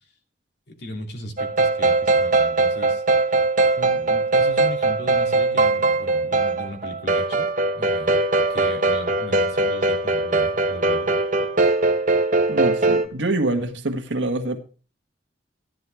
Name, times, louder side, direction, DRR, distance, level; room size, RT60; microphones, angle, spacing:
voice 1, 0.7-3.0 3.8-7.5 7.7-8.2 8.5-11.1 11.4-11.5, left 1 dB, 65° left, 2.9 m, -37 dB
sound 1, 1.4-13.1, right 2 dB, 45° right, 1.2 m, -21 dB
voice 2, 12.5-14.6, right 2 dB, 80° right, 1.8 m, -25 dB
14.5 x 10.5 x 3.5 m
head